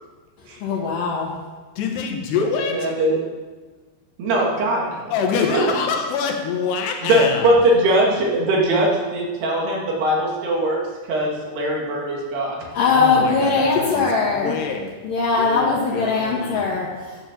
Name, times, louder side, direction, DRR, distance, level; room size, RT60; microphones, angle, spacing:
voice 1, 0.6-1.3 12.7-14.5 15.0-17.2, left 4 dB, 60° left, -5 dB, 3.1 m, -20 dB
voice 2, 1.8-2.9 5.1-7.7 12.8-14.1 14.3-15.0 15.4-16.9, left 5 dB, 85° left, 3 dB, 3.6 m, -26 dB
voice 3, 2.7-3.1 4.2-5.0 7.0-10.8 11.1-12.6, right 1 dB, 75° right, -2 dB, 4.4 m, -20 dB
11.5 x 7.8 x 7.3 m, 1.3 s
omnidirectional pair, 4.7 m